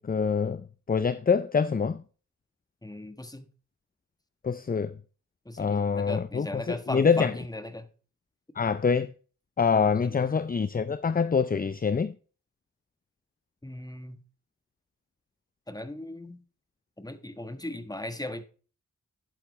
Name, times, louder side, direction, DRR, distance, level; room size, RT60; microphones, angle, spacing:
voice 1, 0.0-2.0 4.4-4.9 5.6-7.3 8.6-9.1 9.6-12.1, left 5 dB, 25° left, 0.5 m, -25 dB
voice 2, 2.8-3.5 5.4-7.9 10.0-10.1 13.6-14.2 15.7-16.4 17.0-18.4, left 1 dB, 10° left, 1.3 m, -38 dB
10.5 x 9.0 x 3.2 m
cardioid pair, 45°, 34 cm